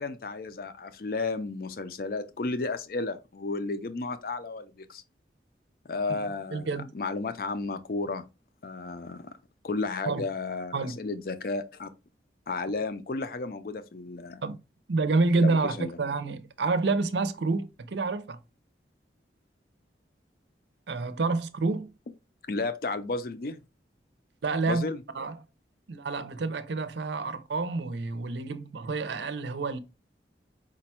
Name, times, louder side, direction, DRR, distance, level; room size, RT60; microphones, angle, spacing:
voice 1, 0.0-5.0 5.9-8.2 8.6-9.3 9.6-11.9 12.5-14.4 15.4-16.0 22.5-23.6 24.6-25.0, left 3 dB, 55° left, 0.5 m, -33 dB
voice 2, 6.5-6.9 10.1-10.2 10.7-11.0 14.4-14.6 14.9-18.4 20.9-21.9 24.4-24.9 25.1-25.4 25.9-29.8, right 3 dB, 80° right, 0.5 m, -28 dB
5.1 x 2.2 x 4.1 m
head